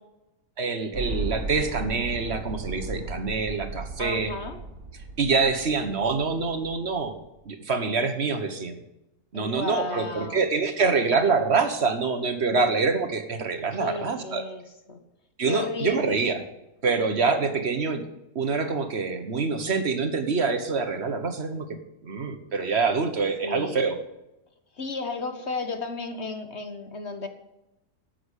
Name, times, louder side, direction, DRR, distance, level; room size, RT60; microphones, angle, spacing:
voice 1, 0.6-4.3 5.2-7.2 7.4-8.8 9.3-14.5 15.4-16.4 16.8-18.0 18.3-21.7 22.0-24.0, right 4 dB, 45° right, 8 dB, 1.4 m, -25 dB
sound 1, 0.9-7.2, right 3 dB, 60° right, 1.9 m, -36 dB
voice 2, 4.0-4.6 9.3-10.4 13.8-14.6 14.9-15.0 15.5-16.3 23.4-23.9 24.8-27.3, left 3 dB, 45° left, 6 dB, 1.5 m, -33 dB
11.5 x 7.9 x 8.3 m, 0.91 s
omnidirectional pair, 1.7 m